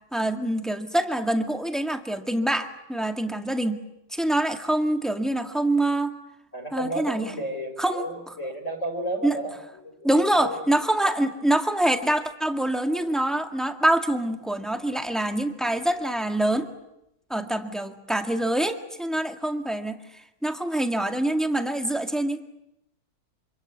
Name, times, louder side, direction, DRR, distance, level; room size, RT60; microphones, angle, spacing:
voice 1, 0.1-3.8 4.1-6.2 6.7-7.3 7.8-8.3 9.2-9.4 10.0-16.7 17.3-20.0 20.4-22.4, right 1 dB, ahead, 5 dB, 1.7 m, -25 dB
voice 2, 6.5-9.6 9.8-10.7 17.3-17.6, right 1 dB, 40° left, 3 dB, 5.7 m, -33 dB
26.5 x 26.0 x 8.1 m, 0.85 s
omnidirectional pair, 2.1 m